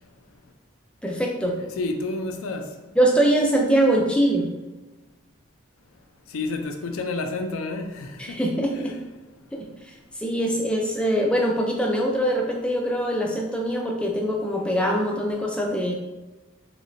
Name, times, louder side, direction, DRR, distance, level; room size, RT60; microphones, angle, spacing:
voice 1, 1.0-1.5 3.0-4.5 8.2-9.0 10.2-15.9, right 1 dB, 5° left, 0.4 m, -23 dB
voice 2, 1.6-2.7 6.3-8.4 8.9-9.0, left 3 dB, 75° left, 0.4 m, -30 dB
3.2 x 3.0 x 2.6 m
head